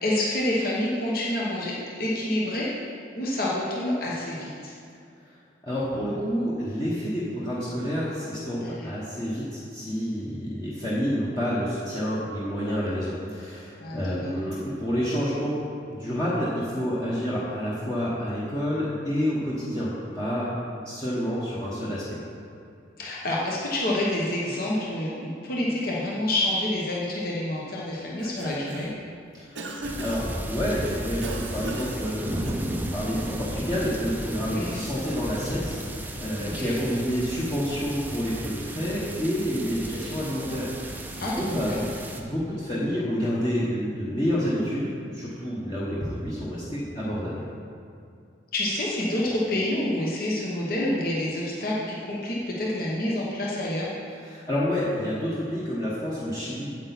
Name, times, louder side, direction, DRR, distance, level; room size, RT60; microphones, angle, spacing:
voice 1, 0.0-2.7 3.2-4.7 8.6-8.9 13.8-14.3 23.0-28.9 34.5-34.8 36.4-36.7 41.2-41.8 48.5-53.9, left 1 dB, 50° left, -5 dB, 1.1 m, -28 dB
voice 2, 5.6-15.5 15.9-20.5 20.8-22.2 29.3-29.7 30.0-41.7 42.1-47.4 54.2-56.7, equal, 20° left, -9 dB, 1.1 m, -29 dB
Cough, 28.0-29.0 29.6-30.4 31.2-32.9, right 2 dB, 70° right, 0.8 m, -37 dB
sound 1, 29.8-42.2, right 1 dB, 10° right, 0.5 m, -34 dB
8.6 x 8.2 x 4.1 m, 2.4 s
head